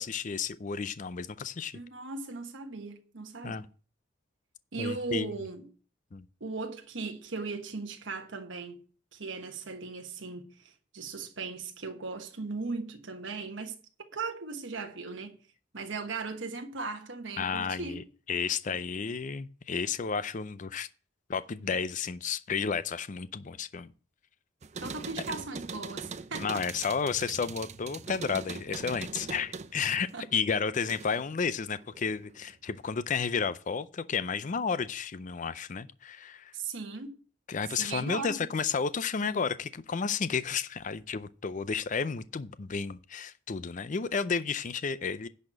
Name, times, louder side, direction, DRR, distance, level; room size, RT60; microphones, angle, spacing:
voice 1, 0.0-1.8 3.4-3.7 4.8-5.3 6.1-6.2 17.4-20.9 21.3-23.9 26.4-36.5 37.5-45.3, left 6 dB, 40° left, 0.5 m, -32 dB
voice 2, 1.7-3.6 4.7-5.7 6.4-8.8 9.1-15.4 15.7-18.0 24.8-26.6 30.1-30.3 36.5-37.1 37.7-38.5, right 4 dB, 70° right, 1.3 m, -38 dB
sound 1, 24.6-31.3 31.7-32.5, right 5 dB, 35° right, 0.5 m, -42 dB
10.5 x 4.2 x 7.6 m
head